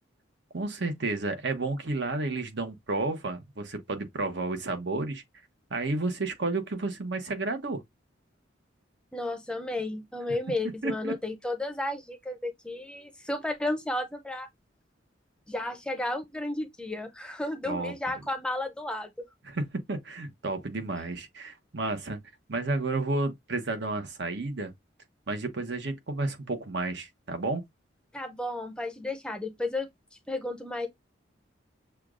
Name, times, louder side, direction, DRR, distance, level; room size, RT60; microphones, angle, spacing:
voice 1, 0.5-5.2 5.7-7.8 10.8-11.2 17.7-17.9 19.4-22.2 22.5-24.7 25.3-27.6, right 2 dB, 60° right, 1.0 m, -31 dB
voice 2, 9.1-14.5 15.5-19.1 28.1-29.9 30.3-30.9, left 2 dB, 5° left, 0.6 m, -33 dB
6.6 x 2.4 x 2.4 m
head